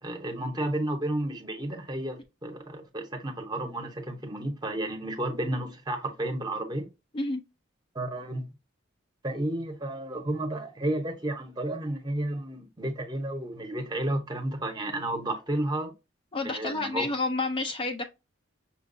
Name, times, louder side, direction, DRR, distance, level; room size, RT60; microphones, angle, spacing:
voice 1, 0.0-6.9 7.9-8.4 9.2-15.9 16.4-17.1, right 1 dB, 20° right, 0.8 m, -32 dB
voice 2, 16.3-18.0, left 2 dB, 25° left, 0.4 m, -29 dB
5.7 x 2.3 x 2.6 m
head